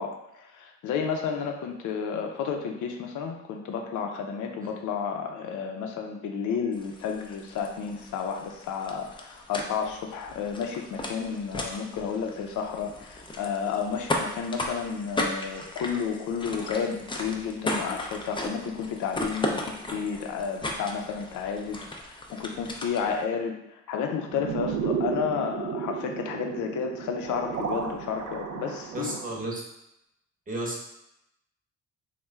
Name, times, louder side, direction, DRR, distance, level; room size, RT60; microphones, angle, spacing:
voice 1, 0.0-29.1, left 6 dB, 80° left, 3 dB, 0.6 m, -32 dB
sound 1, 6.7-23.2, left 1 dB, 15° left, 0.4 m, -36 dB
sound 2, 24.3-29.5, right 6 dB, 80° right, 0.5 m, -33 dB
voice 2, 28.9-29.6 30.5-30.8, right 1 dB, 25° right, -2 dB, 0.9 m, -32 dB
3.1 x 2.2 x 3.4 m, 0.84 s
cardioid pair, 90°, 30 cm